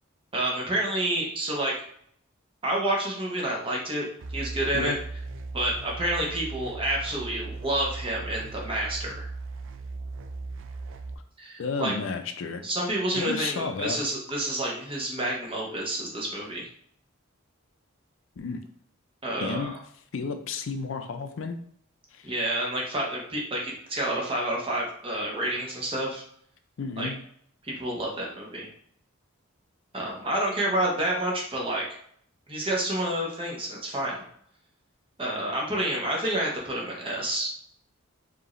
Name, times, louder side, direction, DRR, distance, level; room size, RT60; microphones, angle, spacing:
voice 1, 0.3-1.7 2.6-4.1 4.3-5.0 5.5-9.3 11.4-11.9 12.6-16.7 19.2-19.8 22.2-26.2 27.0-27.1 27.6-28.7 29.9-31.8 32.5-34.2 35.2-37.5, right 1 dB, 25° right, -2 dB, 1.1 m, -29 dB
sound 1, 4.2-11.1, right 3 dB, 60° right, 0.4 m, -37 dB
voice 2, 11.6-12.6 13.1-14.0 18.4-18.6 19.4-19.7 20.1-21.6 22.1-22.3 26.8-27.2, left 4 dB, 65° left, 7 dB, 0.4 m, -32 dB
4.9 x 2.8 x 3.1 m, 0.64 s
head